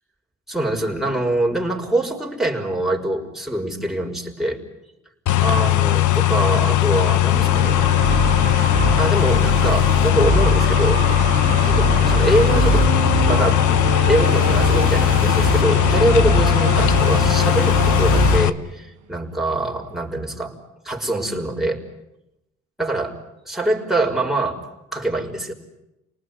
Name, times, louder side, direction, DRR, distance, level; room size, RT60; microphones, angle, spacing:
voice 1, 0.5-4.6 5.4-7.8 9.0-11.0 11.6-12.9 13.3-13.8 14.1-20.5 20.8-21.8 22.8-23.1 23.5-24.6 24.9-25.5, right 1 dB, ahead, -1 dB, 5.8 m, -24 dB
sound 1, 5.3-18.5, left 14 dB, 75° left, 1.2 m, -18 dB
sound 2, 7.3-18.4, right 3 dB, 30° right, 3.3 m, -23 dB
sound 3, 12.5-18.7 19.7-19.8, right 14 dB, 85° right, 1.3 m, -30 dB
29.5 x 19.5 x 9.7 m, 0.91 s
cardioid pair, 90°, 30 cm